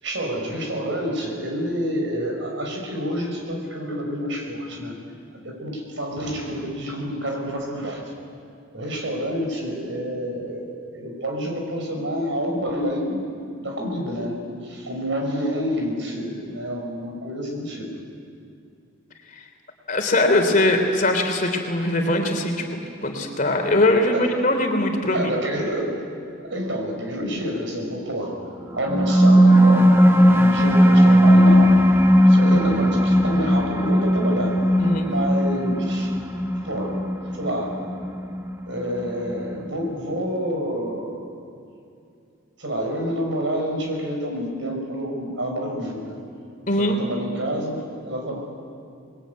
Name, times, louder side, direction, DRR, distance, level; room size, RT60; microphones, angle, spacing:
voice 1, 0.0-5.0 5.4-8.1 8.7-13.2 13.6-17.9 24.1-24.3 25.1-26.0 26.4-28.3 28.7-31.8 32.3-36.1 36.6-37.0 37.3-37.9 38.7-41.3 42.6-46.1 46.8-48.4, equal, 65° right, 2 dB, 5.5 m, -28 dB
voice 2, 19.9-25.3 34.8-35.1 46.7-47.0, left 1 dB, 40° left, 4 dB, 3.2 m, -21 dB
sound 1, 28.7-39.7, equal, 10° right, 1.3 m, -17 dB
25.0 x 21.0 x 9.5 m, 2.5 s
head